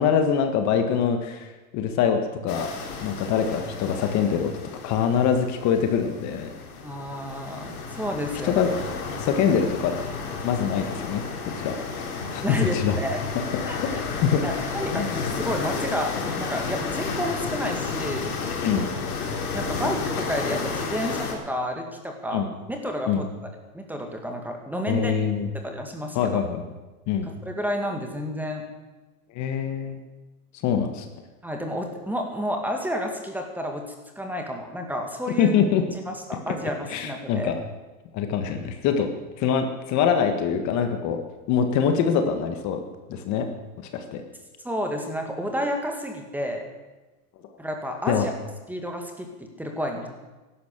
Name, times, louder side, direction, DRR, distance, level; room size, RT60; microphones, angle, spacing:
voice 1, 0.0-2.7 3.0-4.5 4.8-6.5 8.4-8.7 9.2-10.0 10.4-11.2 11.6-11.7 12.3-13.0 13.5-13.9 14.2-14.4 14.9-15.2 18.6-18.8 22.3-22.5 23.1-23.2 24.9-25.5 26.1-26.6 27.1-27.3 29.3-30.0 30.6-31.0 35.4-35.8 36.9-37.5 38.1-39.1 39.4-41.2 41.5-42.8 43.1-43.5 43.9-44.2 48.1-48.3, left 7 dB, 40° left, 6 dB, 1.7 m, -24 dB
sound 1, 2.5-21.3, left 4 dB, 80° left, 4.0 m, -32 dB
voice 2, 6.8-8.7 12.4-13.2 13.7-13.8 14.4-18.3 19.5-23.3 23.7-25.1 25.6-26.4 27.2-28.6 31.4-33.9 34.2-35.5 35.9-37.5 44.6-46.6 47.6-48.3 48.7-50.1, equal, 5° right, 3 dB, 2.0 m, -30 dB
14.5 x 11.5 x 6.8 m, 1.2 s
supercardioid pair, 130°, 44 cm